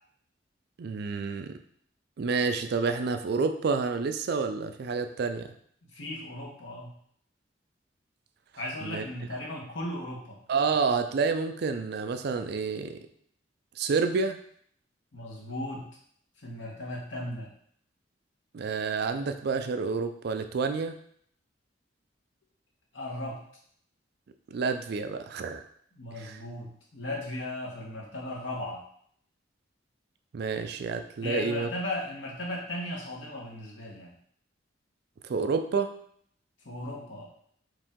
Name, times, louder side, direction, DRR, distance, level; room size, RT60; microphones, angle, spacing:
voice 1, 0.8-1.6 2.2-5.5 8.8-9.0 10.5-13.0 13.8-14.4 18.5-20.9 24.5-25.6 26.2-26.4 30.3-31.7 35.2-35.9, right 4 dB, 60° right, 8 dB, 0.4 m, -29 dB
voice 2, 5.9-7.0 8.6-10.4 15.1-15.9 16.4-17.5 22.9-23.4 26.0-28.8 31.2-34.1 36.6-37.2, left 1 dB, 80° left, -3 dB, 1.2 m, -36 dB
4.8 x 2.6 x 3.6 m, 0.65 s
head